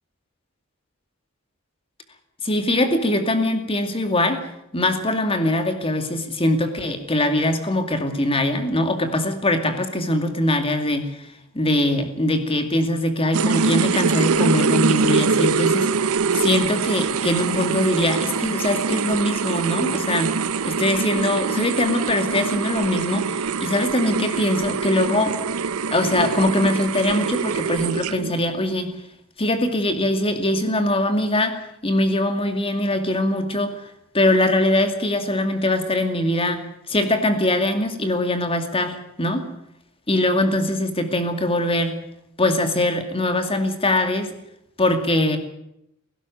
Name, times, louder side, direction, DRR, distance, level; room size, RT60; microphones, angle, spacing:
voice 1, 2.4-4.5 4.7-15.9 16.3-20.4 20.6-25.4 25.9-28.9 29.4-31.6 31.8-39.5 40.1-42.0 42.4-44.3 44.8-45.4, left 1 dB, 25° left, 7 dB, 2.4 m, -22 dB
sound 1, 13.3-28.4, right 5 dB, 75° right, 0.7 m, -24 dB
18.0 x 16.5 x 9.3 m, 0.79 s
head